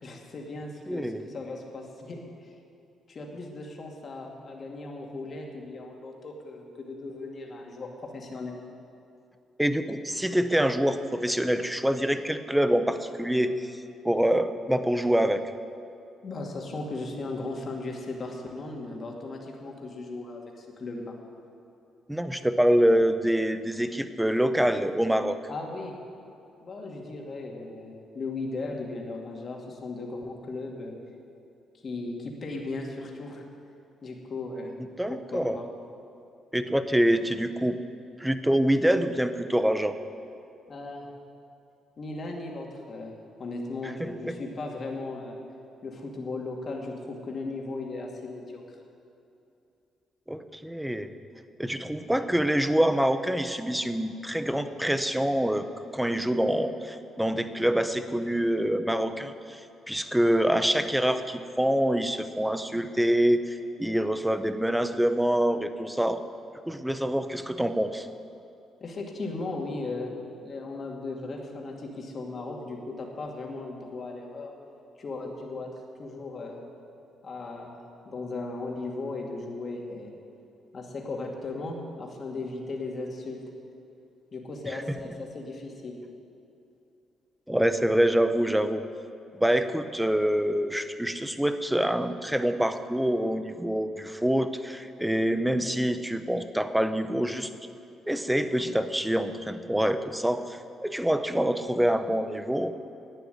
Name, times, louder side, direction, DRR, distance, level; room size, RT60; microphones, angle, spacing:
voice 1, 0.0-2.5 3.1-8.6 16.2-21.2 25.5-26.0 26.6-31.0 31.8-33.4 34.0-34.8 35.1-35.7 40.7-41.1 42.0-45.4 45.8-48.6 68.8-70.2 70.4-74.5 75.0-75.7 76.0-76.7 77.2-80.1 80.7-83.4 84.3-86.0, left 3 dB, 45° left, 1 dB, 2.4 m, -37 dB
voice 2, 0.9-1.2 9.6-13.8 14.0-15.4 22.1-25.4 35.0-35.6 36.5-37.8 38.2-40.0 43.8-44.4 50.3-51.1 51.6-55.7 55.9-59.6 59.9-66.2 66.7-68.1 84.7-84.8 87.5-88.8 89.4-97.5 98.1-102.7, equal, 5° right, 10 dB, 0.8 m, -26 dB
11.5 x 9.1 x 9.3 m, 2.7 s
cardioid pair, 90°, 0 cm